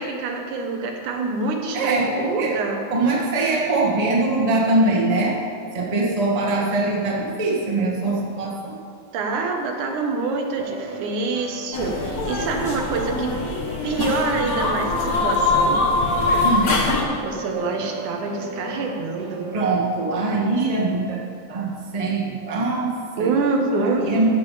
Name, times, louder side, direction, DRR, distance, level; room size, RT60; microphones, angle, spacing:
voice 1, 0.0-2.8 9.1-13.4 13.8-15.8 17.2-19.5 23.2-24.1, right 3 dB, 90° right, 3 dB, 2.6 m, -26 dB
voice 2, 1.7-2.6 2.9-5.4 5.7-8.8 16.4-16.8 19.5-21.2 21.5-23.3 23.7-24.3, right 2 dB, 25° right, -3 dB, 0.8 m, -22 dB
mind battle, 10.6-20.5, right 2 dB, 75° right, 2.2 m, -36 dB
sound 1, 11.7-17.0, left 2 dB, 60° left, 0.9 m, -23 dB
15.0 x 7.2 x 5.0 m, 2.3 s
omnidirectional pair, 3.4 m